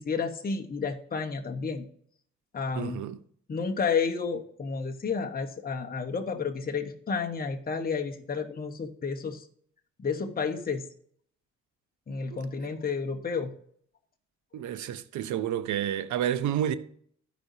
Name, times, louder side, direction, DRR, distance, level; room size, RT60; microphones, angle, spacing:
voice 1, 0.0-1.9 2.5-3.0 3.5-9.4 10.0-10.8 12.1-13.5, left 5 dB, 30° left, 1.0 m, -31 dB
voice 2, 2.7-3.2 12.3-12.4 14.5-16.7, right 10 dB, 75° right, 0.7 m, -30 dB
14.0 x 5.1 x 2.7 m
cardioid pair, 90°, 30 cm